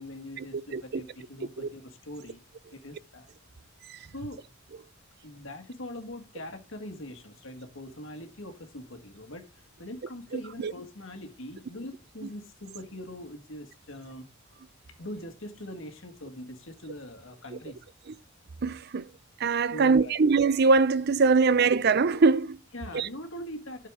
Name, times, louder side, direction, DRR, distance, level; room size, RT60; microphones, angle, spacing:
voice 1, 0.0-2.4 2.7-3.3 4.1-4.5 5.2-14.3 15.0-17.8 19.7-20.2 22.7-23.9, left 1 dB, 70° left, 1.9 m, -42 dB
voice 2, 18.6-19.0 19.4-22.6 22.9-23.1, right 4 dB, 50° right, 0.5 m, -22 dB
12.0 x 6.6 x 3.7 m
head